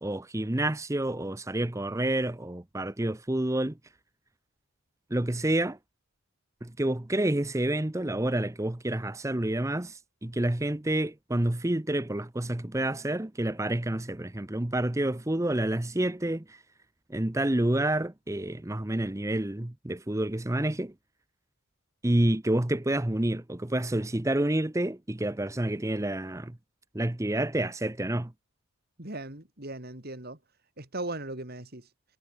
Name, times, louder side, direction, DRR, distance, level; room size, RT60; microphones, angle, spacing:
voice 1, 0.0-3.8 5.1-5.8 6.6-16.6 17.1-20.9 22.0-26.6 26.9-28.3, right 1 dB, 15° right, 0.7 m, -28 dB
voice 2, 29.0-30.4 30.8-31.9, right 2 dB, 45° right, 2.8 m, -38 dB
head